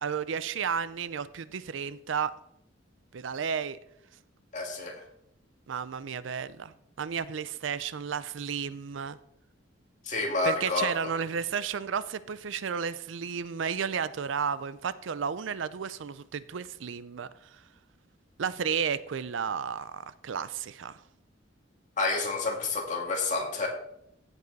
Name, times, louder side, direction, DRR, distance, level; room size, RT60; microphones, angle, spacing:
voice 1, 0.0-2.3 3.1-3.8 5.7-9.2 10.4-17.3 18.4-21.0, right 6 dB, 75° right, 0.5 m, -32 dB
voice 2, 4.5-5.0 10.0-11.1 22.0-23.7, left 3 dB, 40° left, 2.1 m, -29 dB
15.5 x 5.4 x 4.0 m
head